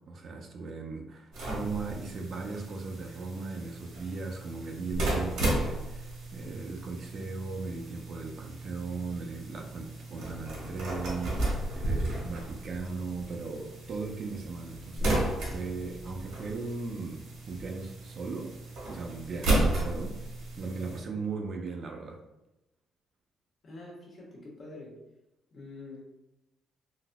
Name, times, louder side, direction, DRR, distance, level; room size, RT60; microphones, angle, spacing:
voice 1, 0.1-15.2 15.5-18.5 18.9-20.1 20.6-22.2, right 4 dB, 55° right, 2 dB, 0.5 m, -38 dB
sound 1, 1.3-21.0, right 1 dB, 85° right, 1.3 m, -34 dB
sound 2, 11.0-11.1 11.6-12.2 12.7-12.8 13.1-13.3 13.8-14.8 15.3-15.6 16.1-16.7 17.5-17.9, left 4 dB, 70° left, 0.5 m, -52 dB
voice 2, 23.6-25.0 25.5-26.0, left 2 dB, 50° left, -3 dB, 1.3 m, -46 dB
4.0 x 2.6 x 2.2 m, 0.96 s
cardioid pair, 90°, 0 cm